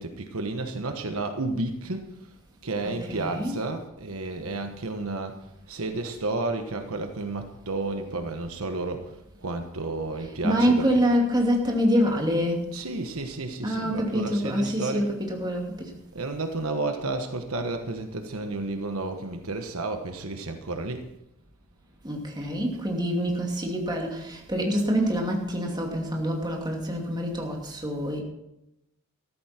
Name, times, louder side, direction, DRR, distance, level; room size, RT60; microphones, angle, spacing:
voice 1, 0.0-2.0 2.6-5.3 5.7-9.1 9.4-10.9 12.7-15.0 16.1-21.0, right 2 dB, 70° right, 6 dB, 1.3 m, -31 dB
voice 2, 2.8-3.6 10.4-12.7 13.6-15.9 22.0-28.2, equal, 20° right, 0 dB, 2.6 m, -26 dB
14.0 x 14.0 x 4.4 m, 0.86 s
head